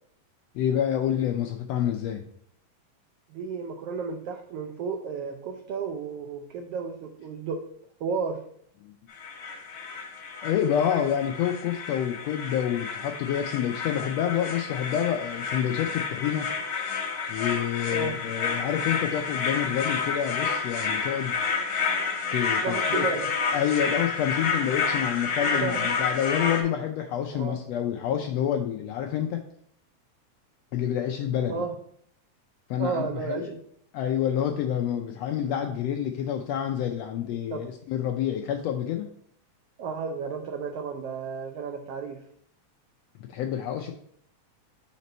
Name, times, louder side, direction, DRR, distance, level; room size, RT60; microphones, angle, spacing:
voice 1, 0.5-2.2 8.8-8.9 10.4-16.5 17.3-21.4 22.3-23.0 23.5-29.4 30.7-31.6 32.7-33.5 33.9-39.1 43.3-43.9, left 9 dB, 80° left, 4 dB, 1.5 m, -28 dB
voice 2, 3.3-7.6 8.0-8.4 17.8-18.1 22.6-23.3 25.5-25.9 27.3-27.6 31.5-31.7 32.8-33.6 37.5-37.7 39.8-42.2, right 5 dB, 85° right, 4 dB, 1.3 m, -32 dB
sound 1, 9.1-26.6, left 5 dB, 50° left, 1.7 m, -30 dB
5.1 x 4.2 x 5.2 m, 0.65 s
omnidirectional pair, 3.4 m